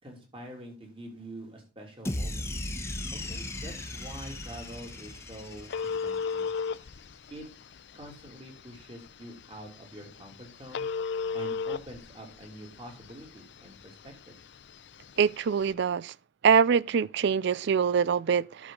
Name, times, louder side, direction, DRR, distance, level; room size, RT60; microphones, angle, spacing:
voice 1, 0.0-2.5 3.1-6.5 7.3-7.5 7.9-10.9 11.3-14.4, right 1 dB, 30° right, 2.9 m, -46 dB
sound 1, 2.0-6.4, left 1 dB, 15° left, 1.0 m, -37 dB
Telephone, 3.2-15.7, left 5 dB, 60° left, 0.6 m, -38 dB
voice 2, 15.2-16.1 16.4-18.7, right 7 dB, 60° right, 0.4 m, -24 dB
11.5 x 6.2 x 3.8 m
head